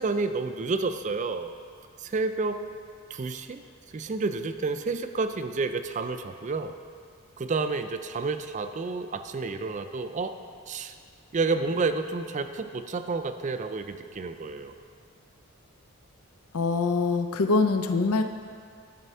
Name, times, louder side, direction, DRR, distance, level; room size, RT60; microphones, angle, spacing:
voice 1, 0.0-1.5 2.0-2.6 3.1-3.6 3.9-6.7 7.4-10.3 10.7-10.9 11.3-14.7, right 3 dB, 35° right, 9 dB, 0.4 m, -30 dB
voice 2, 16.5-18.2, left 3 dB, 80° left, 7 dB, 0.5 m, -24 dB
11.0 x 5.1 x 5.5 m, 2.1 s
head